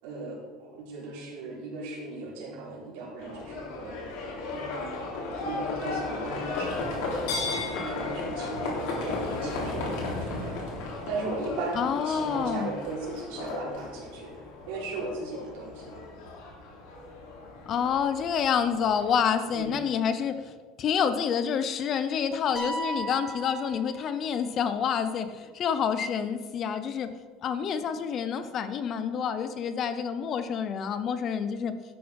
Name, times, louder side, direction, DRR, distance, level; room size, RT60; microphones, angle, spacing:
voice 1, 0.0-4.0 4.3-5.1 5.4-10.6 11.1-16.0 19.5-19.8, right 3 dB, 75° right, -3 dB, 4.0 m, -37 dB
Livestock farm animals working animals, 3.2-19.7, left 3 dB, 75° left, 3.5 m, -35 dB
voice 2, 11.7-12.7 17.7-27.1 27.4-31.7, left 7 dB, 30° left, 11 dB, 0.6 m, -28 dB
sound 1, 22.6-24.5, right 1 dB, 10° left, 2.1 m, -36 dB
12.0 x 7.6 x 5.2 m, 1.5 s
cardioid pair, 175°, 0 cm